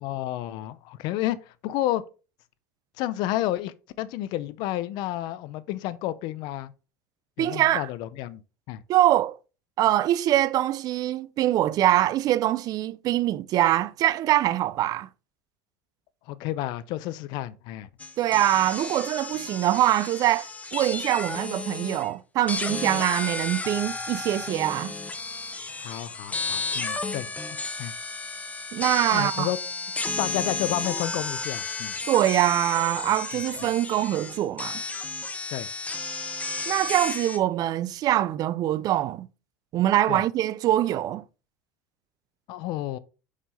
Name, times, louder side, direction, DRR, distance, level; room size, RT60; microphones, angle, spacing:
voice 1, 0.0-2.0 3.0-6.7 7.4-8.4 8.7-8.8 16.3-17.9 25.8-27.3 27.8-27.9 29.1-29.6 30.2-31.9 33.3-33.7 35.5-35.7 40.1-40.2 42.5-43.0, left 14 dB, 60° left, 0.6 m, -31 dB
voice 2, 7.4-7.9 8.9-9.4 9.8-15.1 18.2-24.9 28.7-29.5 32.1-34.8 36.7-39.3 39.7-41.2, right 13 dB, 50° right, 0.4 m, -24 dB
sound 1, 18.0-22.1 22.5-37.4, left 3 dB, 15° left, 1.0 m, -33 dB
5.4 x 4.9 x 4.1 m
hypercardioid pair, 80°, 9 cm